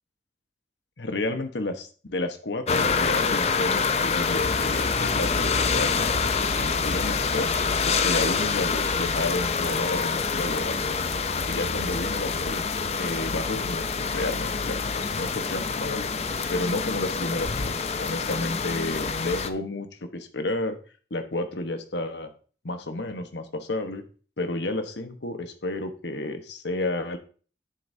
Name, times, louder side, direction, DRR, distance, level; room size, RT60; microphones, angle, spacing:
voice 1, 1.0-10.8 11.5-16.1 16.5-19.9 20.1-20.8 21.1-22.3 22.6-24.0 24.4-27.2, left 2 dB, 80° left, 7 dB, 1.2 m, -31 dB
sound 1, 2.7-19.5, left 5 dB, 35° left, 0.5 m, -26 dB
10.0 x 7.7 x 2.7 m, 0.40 s
head